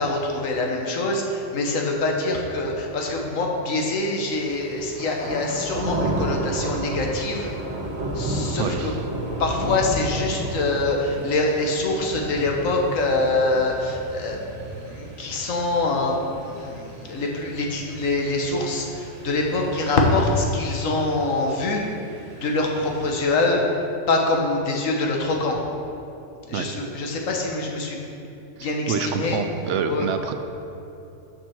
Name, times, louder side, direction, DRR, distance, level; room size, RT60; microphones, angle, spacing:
voice 1, 0.0-7.5 8.1-8.9 9.4-16.2 16.4-21.8 22.4-23.6 24.1-25.6 26.5-28.0 28.6-29.4 29.9-30.1, left 2 dB, 80° left, 0 dB, 1.4 m, -24 dB
sound 1, 4.3-23.4, right 1 dB, 50° right, 1.5 m, -33 dB
voice 2, 8.6-9.0 26.5-26.7 28.6-30.3, right 6 dB, 70° right, 7 dB, 0.9 m, -27 dB
7.2 x 5.5 x 6.3 m, 2.8 s
omnidirectional pair, 1.4 m